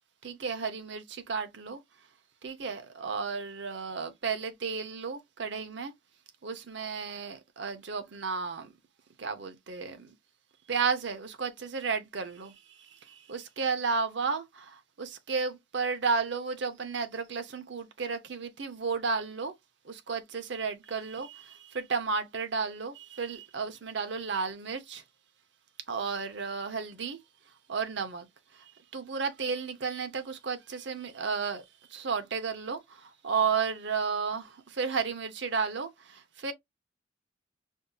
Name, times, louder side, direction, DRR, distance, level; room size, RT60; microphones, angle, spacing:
voice 1, 0.2-1.8 2.4-5.9 6.4-8.7 9.2-10.1 10.7-12.5 12.9-19.5 19.8-25.0 25.9-27.2 27.7-28.3 28.5-31.6 31.9-36.5, right 5 dB, 65° right, 0.6 m, -33 dB
5.1 x 2.7 x 2.2 m
head